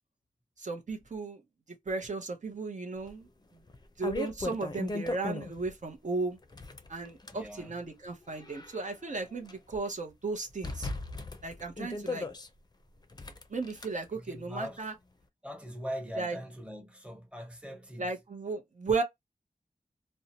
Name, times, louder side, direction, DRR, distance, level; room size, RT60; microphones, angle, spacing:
voice 1, 0.6-1.4 1.9-3.3 4.0-6.4 6.9-10.9 11.4-12.3 13.5-14.9 16.2-16.4 18.0-19.0, right 3 dB, 60° right, 0.8 m, -35 dB
sound 1, 3.1-3.2 3.7-5.7 6.4-7.4 8.1-9.5 9.8-9.9 10.6-12.5 13.1-13.9, left 2 dB, 30° left, 0.5 m, -38 dB
voice 2, 7.2-7.8 14.1-14.9 15.4-18.1, equal, 10° right, 0.9 m, -41 dB
2.6 x 2.1 x 2.7 m
wide cardioid pair, 80°, 14 cm